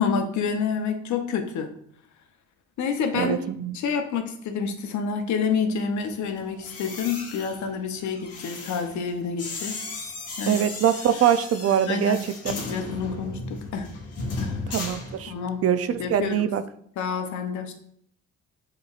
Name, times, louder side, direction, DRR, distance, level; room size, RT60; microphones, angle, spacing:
voice 1, 0.0-1.7 2.8-3.4 3.7-9.8 10.4-10.6 11.9-12.2 12.5-13.9 14.4-14.7 15.3-15.6 16.0-16.5 17.0-17.7, left 6 dB, 70° left, 6 dB, 0.7 m, -28 dB
voice 2, 3.1-3.8 10.5-12.2 14.7-15.3 15.6-16.6, right 9 dB, 55° right, 12 dB, 0.4 m, -23 dB
sound 1, 6.5-15.6 15.9-16.2, left 3 dB, 50° left, 1.1 m, -36 dB
6.7 x 3.0 x 2.4 m, 0.66 s
cardioid pair, 90°, 30 cm